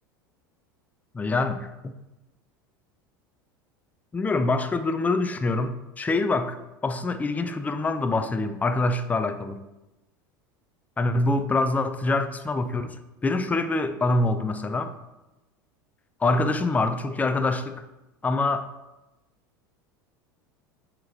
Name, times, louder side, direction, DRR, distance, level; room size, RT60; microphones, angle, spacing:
voice 1, 1.1-1.7 4.1-6.6 6.8-9.6 11.0-14.9 16.2-17.9 18.2-18.7, left 2 dB, 15° left, 9 dB, 0.4 m, -25 dB
6.3 x 2.9 x 2.5 m, 0.98 s
hypercardioid pair, 80°, 11 cm